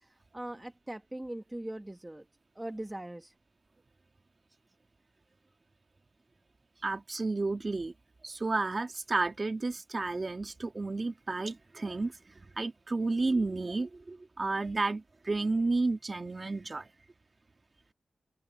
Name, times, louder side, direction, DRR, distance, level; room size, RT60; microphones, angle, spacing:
voice 1, 0.0-2.2 2.5-3.3, right 1 dB, 15° right, 1.3 m, -41 dB
voice 2, 6.8-7.9 8.2-12.2 12.6-16.9, right 3 dB, 35° right, 1.8 m, -31 dB
wide cardioid pair, 90°, 0 cm